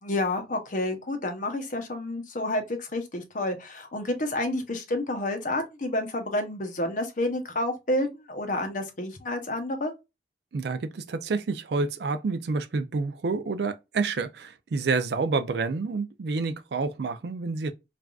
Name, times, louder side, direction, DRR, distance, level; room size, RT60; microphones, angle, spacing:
voice 1, 0.0-9.9, left 1 dB, 50° left, 0.8 m, -29 dB
voice 2, 10.5-17.7, right 4 dB, 65° right, 0.4 m, -28 dB
3.4 x 2.5 x 2.3 m
head